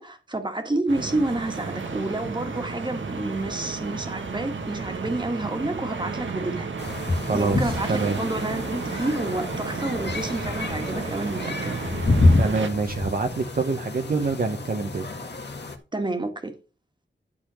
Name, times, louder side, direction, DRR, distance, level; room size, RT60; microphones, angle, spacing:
voice 1, 0.0-6.7 7.1-11.7 15.9-16.5, right 2 dB, 25° right, 1.8 m, -29 dB
sound 1, 0.9-12.7, right 4 dB, 75° right, 1.7 m, -33 dB
sound 2, 6.8-15.8, left 2 dB, 60° left, 1.8 m, -27 dB
voice 2, 7.2-8.2 12.4-15.1, right 4 dB, 50° right, 1.0 m, -26 dB
12.0 x 4.2 x 6.4 m
wide cardioid pair, 115°, 20 cm